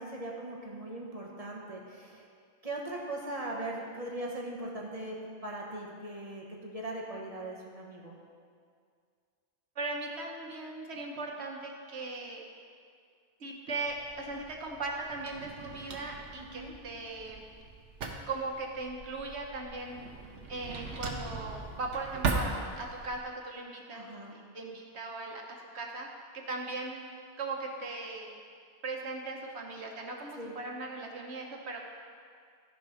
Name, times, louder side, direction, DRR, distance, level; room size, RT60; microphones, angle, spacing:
voice 1, 0.0-2.3 2.6-8.2 16.3-16.7 23.9-24.4 30.3-30.5, right 1 dB, 30° right, -1 dB, 1.3 m, -40 dB
voice 2, 9.8-12.4 13.4-17.4 18.3-20.0 20.5-25.4 25.7-26.1 26.5-27.0 27.4-28.3 28.8-31.8, right 3 dB, 65° right, 1 dB, 1.5 m, -38 dB
Drawer open or close, 13.8-23.2, right 3 dB, 85° right, 1.3 m, -39 dB
14.5 x 6.0 x 5.0 m, 2.2 s
omnidirectional pair, 1.2 m